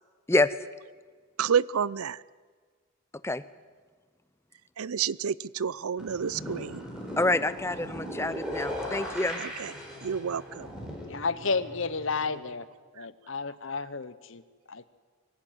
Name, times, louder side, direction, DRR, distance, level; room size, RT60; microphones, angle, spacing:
voice 1, 1.4-2.2 4.8-6.8 9.4-9.7 10.0-10.7 13.0-13.1, right 7 dB, 85° right, 21 dB, 0.5 m, -29 dB
sound 1, 6.0-12.4, equal, 5° right, 4.5 m, -38 dB
voice 2, 7.2-9.4, left 2 dB, 10° left, 15 dB, 0.6 m, -27 dB
voice 3, 11.1-12.7 13.0-14.4 14.7-14.9, left 4 dB, 60° left, 15 dB, 1.0 m, -31 dB
24.0 x 15.0 x 9.3 m, 1.6 s
head